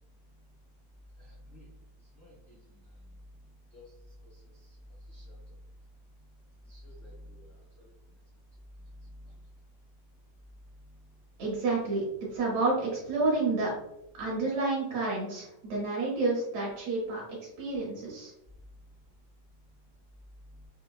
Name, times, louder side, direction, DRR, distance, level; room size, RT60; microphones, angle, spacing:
voice 1, 1.2-1.7 2.2-3.1 3.7-3.9 4.2-4.3 5.1-5.4 6.7-7.5 7.8-7.9, left 1 dB, 75° left, -7 dB, 1.1 m, -50 dB
voice 2, 11.4-12.0 12.3-13.7 14.2-17.2 17.6-18.3, right 3 dB, 70° right, -4 dB, 1.8 m, -29 dB
5.5 x 2.1 x 2.2 m, 0.85 s
omnidirectional pair, 3.7 m